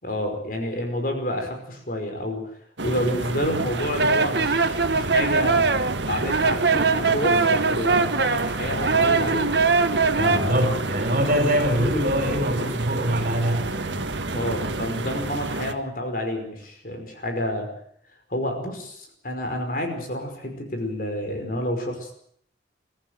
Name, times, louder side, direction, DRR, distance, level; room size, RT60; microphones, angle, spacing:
voice 1, 0.0-5.7 6.0-9.5 10.2-10.8 14.3-17.7 18.3-22.1, left 1 dB, 50° left, 4 dB, 5.2 m, -29 dB
sound 1, 2.8-15.7, right 2 dB, 80° right, 1.7 m, -29 dB
sound 2, 3.6-10.4, right 4 dB, 65° right, 1.3 m, -22 dB
voice 2, 10.1-14.0, equal, 50° right, 6 dB, 4.9 m, -24 dB
22.5 x 14.5 x 9.4 m, 0.67 s
head